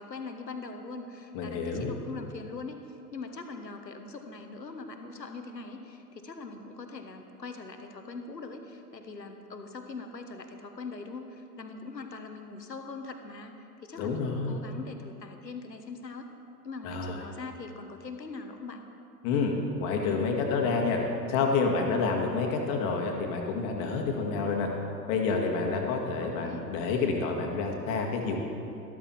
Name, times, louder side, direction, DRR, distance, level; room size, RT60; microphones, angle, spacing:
voice 1, 0.0-13.5 13.8-16.3 16.6-18.8 26.2-26.7, left 3 dB, 85° left, 6 dB, 1.2 m, -42 dB
voice 2, 1.3-1.9 14.0-14.6 16.8-17.2 19.2-19.5 19.8-21.0 21.3-24.7 25.1-28.4, left 4 dB, 40° left, 1 dB, 1.9 m, -28 dB
13.0 x 12.5 x 4.3 m, 2.8 s
figure-of-eight pair, 95°, 49 cm